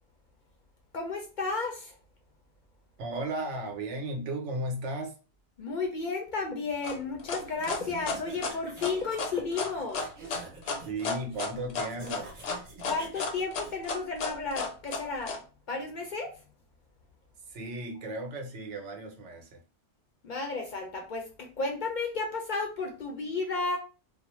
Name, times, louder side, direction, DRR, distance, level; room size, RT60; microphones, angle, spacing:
voice 1, 0.9-2.0 5.6-10.4 12.8-16.3 20.2-23.8, left 4 dB, 55° left, 2 dB, 0.5 m, -33 dB
voice 2, 3.0-5.2 10.8-12.3 17.5-19.6, right 1 dB, 90° right, 3 dB, 1.0 m, -35 dB
sound 1, 6.8-15.4, left 4 dB, 85° left, 0.9 m, -33 dB
sound 2, 7.5-13.7, right 3 dB, 55° right, 0.8 m, -47 dB
2.4 x 2.0 x 3.0 m, 0.35 s
omnidirectional pair, 1.2 m